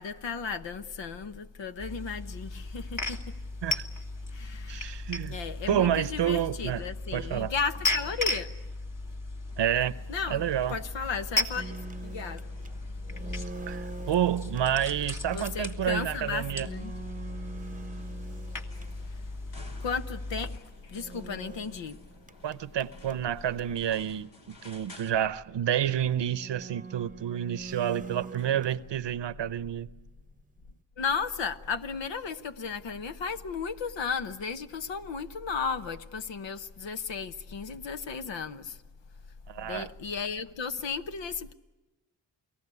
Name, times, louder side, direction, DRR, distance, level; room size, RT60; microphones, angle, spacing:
voice 1, 0.0-3.3 4.3-5.0 5.3-8.5 10.1-10.4 10.7-11.8 12.0-12.4 15.3-16.9 19.8-22.0 31.0-38.8 39.6-41.5, left 5 dB, 90° left, 1.0 m, -34 dB
sound 1, 1.8-20.6, left 2 dB, 45° left, 2.1 m, -36 dB
voice 2, 4.7-5.4 5.7-6.8 7.1-7.5 9.6-10.0 10.3-10.8 13.7-16.7 22.4-29.9 39.5-39.9, right 10 dB, 75° right, 0.8 m, -29 dB
sound 2, 9.5-25.1, left 2 dB, 75° left, 2.9 m, -56 dB
sound 3, 11.6-19.4 20.9-23.9 24.3-24.4 24.6-24.7 25.5-25.6 26.2-29.4 29.7-30.8, right 4 dB, 20° right, 0.8 m, -45 dB
29.0 x 18.5 x 9.7 m
cardioid pair, 45°, 43 cm